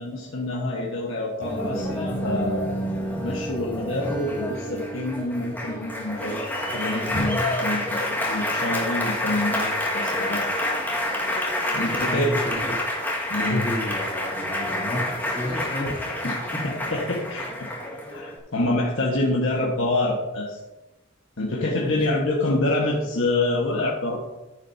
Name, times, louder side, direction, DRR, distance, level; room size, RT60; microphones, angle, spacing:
voice 1, 0.0-2.7 3.2-10.5 11.7-12.3 13.3-13.6 16.2-16.4 16.6-17.7 18.1-20.6 21.4-24.2, left 2 dB, 90° left, -3 dB, 1.5 m, -27 dB
Applause, 1.4-18.4, left 1 dB, 10° left, 1.8 m, -28 dB
voice 2, 12.0-12.7 13.4-16.5 21.8-22.2, left 1 dB, 25° left, -5 dB, 2.9 m, -31 dB
14.0 x 7.6 x 2.8 m, 1.0 s
head